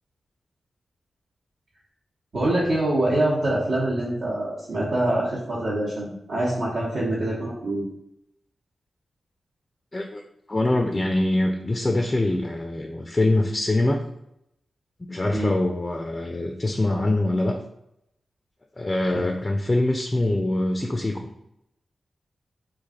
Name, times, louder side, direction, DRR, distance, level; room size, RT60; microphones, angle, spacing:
voice 1, 2.3-7.9 15.3-15.5 19.1-19.2, right 1 dB, 75° right, -10 dB, 1.1 m, -25 dB
voice 2, 10.5-14.0 15.1-17.6 18.8-21.3, left 1 dB, 25° left, 3 dB, 0.3 m, -24 dB
3.2 x 2.4 x 3.6 m, 0.80 s
cardioid pair, 70°, 0 cm